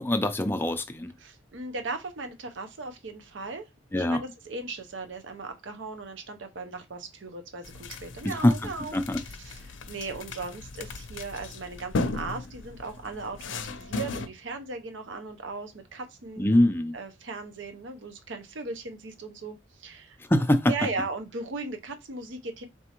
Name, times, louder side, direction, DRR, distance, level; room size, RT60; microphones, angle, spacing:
voice 1, 0.0-1.1 3.9-4.2 8.2-8.5 8.9-9.2 16.4-16.9 20.3-20.7, left 1 dB, 10° left, 0.4 m, -23 dB
voice 2, 1.2-3.7 4.1-9.0 9.2-16.6 16.9-20.2 20.7-22.6, right 3 dB, 80° right, 0.7 m, -37 dB
sound 1, 7.6-14.3, left 3 dB, 80° left, 0.5 m, -36 dB
4.1 x 3.4 x 2.9 m
head